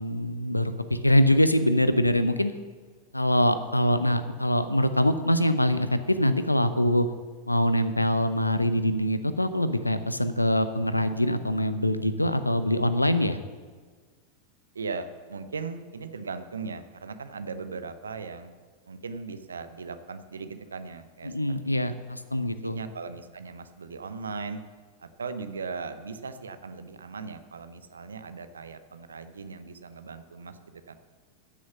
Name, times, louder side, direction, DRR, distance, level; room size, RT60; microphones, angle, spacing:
voice 1, 0.0-2.5 3.1-7.1 7.5-13.4 21.2-22.8, left 1 dB, 85° left, 12 dB, 0.7 m, -24 dB
voice 2, 14.7-18.5 18.9-21.4 21.6-21.9 22.6-24.6 25.0-31.0, right 4 dB, 70° right, 10 dB, 0.8 m, -38 dB
13.0 x 6.3 x 7.3 m, 1.5 s
figure-of-eight pair, 90°, 0 cm